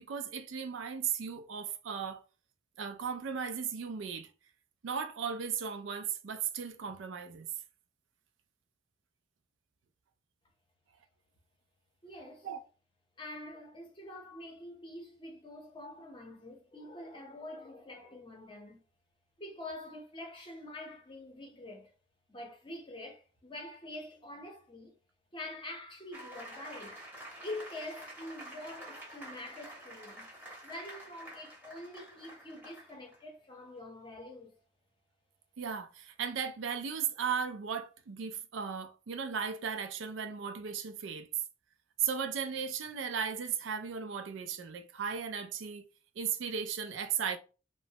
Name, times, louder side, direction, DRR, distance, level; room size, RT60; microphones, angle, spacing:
voice 1, 0.0-2.2 2.8-4.3 4.8-7.5 12.4-12.6 35.6-41.3 42.0-45.8 46.2-47.4, right 7 dB, 70° right, 0.4 m, -36 dB
voice 2, 12.0-12.5 13.2-18.8 19.4-21.9 22.3-24.9 25.3-27.0 27.4-30.3 30.6-34.5, left 1 dB, 25° left, 0.7 m, -45 dB
sound 1, 26.1-33.2, right 1 dB, 10° right, 0.8 m, -49 dB
3.0 x 2.0 x 2.7 m
head